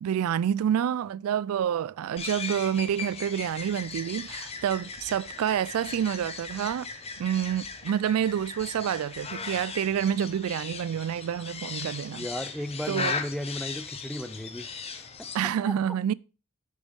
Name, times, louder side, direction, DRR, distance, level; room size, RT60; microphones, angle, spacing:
voice 1, 0.0-6.9 7.2-12.3 12.9-13.1 15.3-16.1, right 9 dB, 70° right, 0.3 m, -28 dB
sound 1, 2.2-15.4, left 5 dB, 30° left, 0.9 m, -38 dB
voice 2, 12.1-14.7 15.0-15.3 15.7-15.8, left 1 dB, ahead, 0.4 m, -35 dB
7.2 x 6.3 x 5.2 m
head